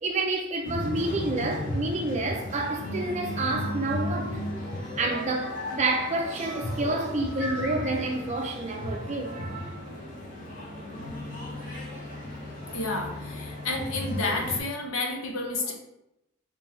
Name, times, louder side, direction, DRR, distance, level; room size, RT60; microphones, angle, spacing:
voice 1, 0.0-4.4 5.0-9.9, right 2 dB, 35° right, 0.5 m, -29 dB
sound 1, 0.6-14.6, left 1 dB, 40° left, 1.2 m, -35 dB
voice 2, 11.8-12.1 12.4-15.7, left 2 dB, 75° left, 0.8 m, -31 dB
3.4 x 3.3 x 3.3 m
head